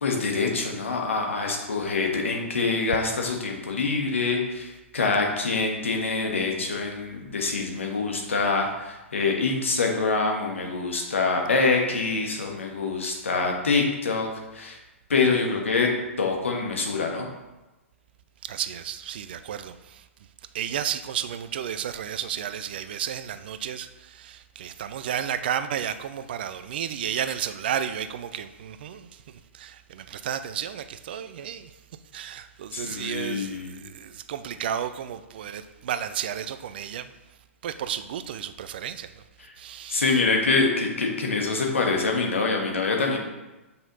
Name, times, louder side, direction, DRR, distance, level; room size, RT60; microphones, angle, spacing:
voice 1, 0.0-14.8 15.1-15.9 16.2-17.3 32.7-33.8 39.9-43.2, left 4 dB, 65° left, 1 dB, 1.5 m, -25 dB
voice 2, 18.4-20.1 20.5-31.7 32.1-37.1 37.6-39.2 39.6-40.2, right 9 dB, 45° right, 11 dB, 0.5 m, -32 dB
7.1 x 5.8 x 3.9 m, 1.1 s
figure-of-eight pair, 115°, 7 cm